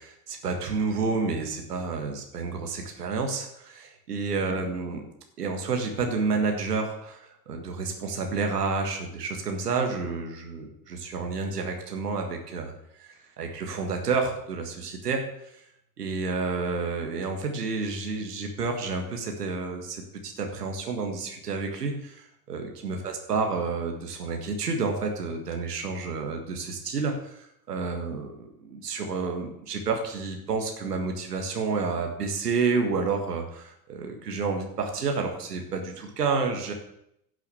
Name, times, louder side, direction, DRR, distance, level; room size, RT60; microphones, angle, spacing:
voice 1, 0.0-5.0 5.4-12.7 13.0-15.6 16.0-36.7, right 4 dB, 90° right, 3 dB, 1.8 m, -30 dB
11.0 x 6.5 x 7.0 m, 0.77 s
hypercardioid pair, 80°, 46 cm